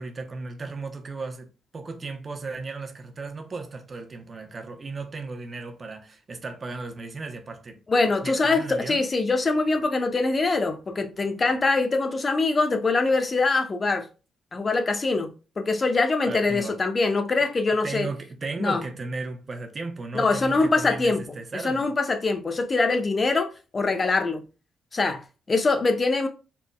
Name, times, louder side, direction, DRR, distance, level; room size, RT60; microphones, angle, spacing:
voice 1, 0.0-1.5 1.7-7.8 8.2-9.0 16.2-16.8 17.8-21.9, right 3 dB, 40° right, 0.9 m, -35 dB
voice 2, 7.9-14.1 14.5-18.1 18.6-18.8 20.1-21.2 21.5-24.4 24.9-25.2 25.5-26.3, left 3 dB, 40° left, 0.8 m, -23 dB
4.2 x 3.6 x 2.3 m
hypercardioid pair, 45°, 0 cm